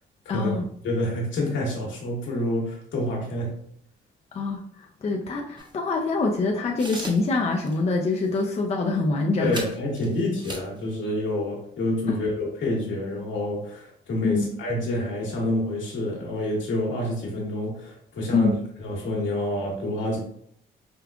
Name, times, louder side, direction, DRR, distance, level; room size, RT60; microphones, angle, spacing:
voice 1, 0.3-0.7 4.3-4.6 5.0-9.6 12.1-12.2 14.2-14.5 18.3-18.6, left 3 dB, 35° left, 1 dB, 0.4 m, -25 dB
voice 2, 0.8-3.5 9.4-18.5 18.8-20.2, left 1 dB, 70° left, -2 dB, 1.4 m, -28 dB
sound 1, 5.6-5.7 6.8-7.4 7.6-7.8 8.2-8.4 9.5-10.8, right 2 dB, 25° right, 0.8 m, -38 dB
5.1 x 2.3 x 2.3 m, 0.68 s
cardioid pair, 90°, 20 cm